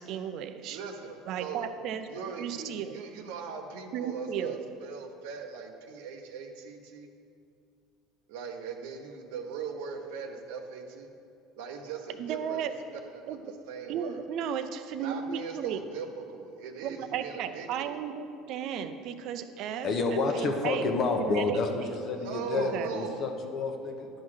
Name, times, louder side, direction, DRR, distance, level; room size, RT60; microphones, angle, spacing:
voice 1, 0.0-0.8 1.3-2.1 2.4-3.0 3.9-4.6 12.2-12.7 13.3-13.4 13.9-15.8 16.8-20.9 21.2-21.9 22.5-22.9, right 8 dB, 60° right, 10 dB, 0.5 m, -35 dB
voice 2, 0.7-1.7 2.1-7.1 8.3-11.1 11.6-12.7 13.0-14.2 15.0-18.0 22.2-23.2, right 5 dB, 85° right, 4 dB, 0.8 m, -40 dB
voice 3, 19.8-21.7 22.0-24.1, left 3 dB, 45° left, 4 dB, 0.9 m, -29 dB
10.5 x 3.8 x 6.3 m, 2.5 s
supercardioid pair, 120°, 0 cm